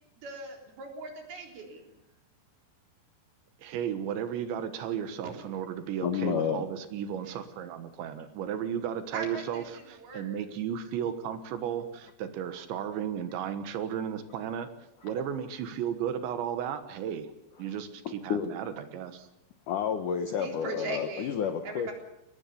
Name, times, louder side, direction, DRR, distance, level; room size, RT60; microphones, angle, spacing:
voice 1, 0.2-1.8 9.1-9.6 10.0-10.4 20.4-21.3 21.6-21.9, right 3 dB, 55° right, 1 dB, 5.6 m, -39 dB
voice 2, 3.6-14.7 15.0-17.3 17.6-19.3, right 9 dB, 80° right, 9 dB, 3.6 m, -34 dB
voice 3, 6.0-6.6 18.1-18.6 19.7-21.9, left 8 dB, 70° left, 6 dB, 2.0 m, -30 dB
22.5 x 19.0 x 7.0 m, 0.87 s
omnidirectional pair, 5.2 m